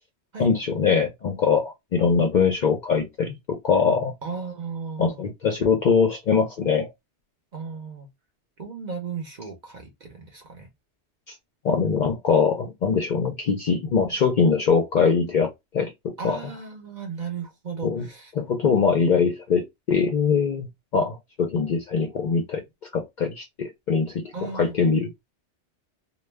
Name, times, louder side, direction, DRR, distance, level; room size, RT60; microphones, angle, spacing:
voice 1, 0.4-4.1 5.0-6.9 11.3-11.4 11.6-16.4 17.8-18.0 18.4-20.7 20.9-22.6 22.9-24.2 24.5-25.1, left 5 dB, 55° left, 0.5 m, -22 dB
voice 2, 4.2-5.8 7.5-8.1 8.6-10.7 16.2-18.3 24.3-24.8, right 5 dB, 45° right, 0.7 m, -36 dB
2.2 x 2.2 x 3.2 m
omnidirectional pair, 1.2 m